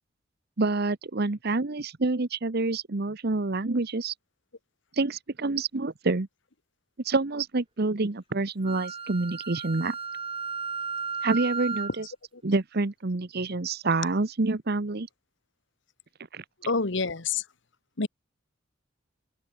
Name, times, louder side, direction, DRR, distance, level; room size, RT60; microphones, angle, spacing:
voice 1, 0.6-4.1 5.0-6.3 7.0-10.0 11.2-12.0 12.4-15.1 16.3-16.4, right 3 dB, 55° right, 1.0 m, -27 dB
Wind instrument woodwind instrument, 8.6-12.0, right 5 dB, 30° right, 2.0 m, -34 dB
voice 2, 16.6-17.4 18.0-18.1, left 4 dB, 65° left, 1.4 m, -27 dB
head